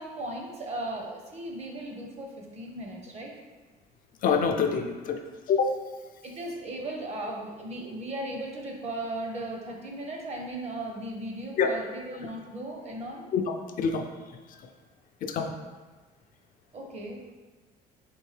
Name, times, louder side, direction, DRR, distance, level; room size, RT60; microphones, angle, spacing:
voice 1, 0.0-3.3 6.2-13.2 16.7-17.2, right 1 dB, 40° right, 0 dB, 0.8 m, -37 dB
voice 2, 4.2-5.2 5.5-5.8 11.6-11.7 12.2-12.3 13.3-14.7 15.2-15.5, left 5 dB, 55° left, 4 dB, 0.4 m, -27 dB
4.5 x 2.6 x 3.2 m, 1.3 s
cardioid pair, 110°, 17 cm